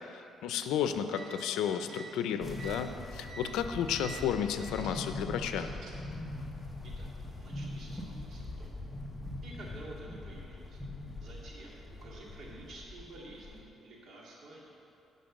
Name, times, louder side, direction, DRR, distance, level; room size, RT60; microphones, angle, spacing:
voice 1, 0.4-5.7, left 8 dB, 90° left, 9 dB, 0.5 m, -32 dB
sound 1, 1.0-6.1, right 3 dB, 85° right, 1.6 m, -49 dB
sound 2, 2.4-13.6, left 2 dB, 10° left, 1.2 m, -42 dB
voice 2, 7.4-8.7 9.4-10.8 11.2-14.7, right 2 dB, 60° right, -3 dB, 2.2 m, -50 dB
11.0 x 5.4 x 6.5 m, 2.9 s
cardioid pair, 110°, 0 cm